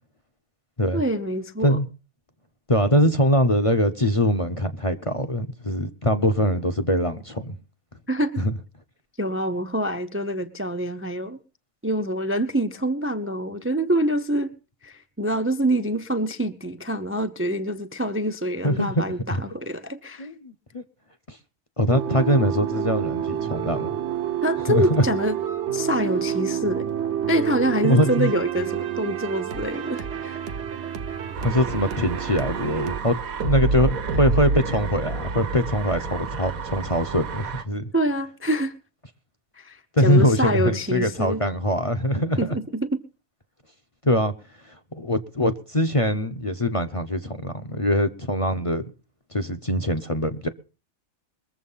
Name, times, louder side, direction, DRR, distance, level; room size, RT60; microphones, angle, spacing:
voice 1, 0.9-1.8 8.1-8.4 9.2-11.4 11.8-14.5 14.8-20.3 24.4-25.4 25.7-26.9 27.3-30.4 37.9-38.7 39.6-41.4 42.4-43.0, right 1 dB, 10° right, 0.7 m, -26 dB
voice 2, 2.7-7.5 8.4-8.5 18.6-19.0 19.3-19.4 20.2-20.8 21.3-21.4 21.8-23.9 24.7-25.1 27.8-28.3 31.4-37.9 39.9-42.6 44.0-44.3 44.6-48.8 49.3-50.5, equal, 25° left, 0.9 m, -23 dB
sound 1, 21.9-33.0, right 9 dB, 55° right, 1.2 m, -29 dB
sound 2, 31.3-37.6, right 4 dB, 90° right, 1.6 m, -28 dB
22.0 x 7.6 x 5.6 m
omnidirectional pair, 1.4 m